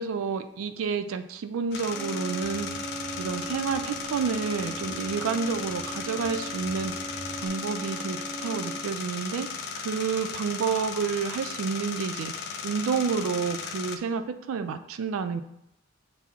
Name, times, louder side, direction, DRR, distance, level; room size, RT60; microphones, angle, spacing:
voice 1, 0.0-2.7 3.2-6.9 7.4-9.5 9.8-12.3 12.6-15.4, right 5 dB, 75° right, 10 dB, 0.3 m, -29 dB
sound 1, 1.7-14.0, left 5 dB, 50° left, 0.3 m, -36 dB
sound 2, 1.9-9.0, right 2 dB, 30° left, 1.0 m, -39 dB
sound 3, 2.4-7.5, right 1 dB, 25° right, 0.6 m, -48 dB
5.8 x 2.0 x 3.5 m, 0.80 s
head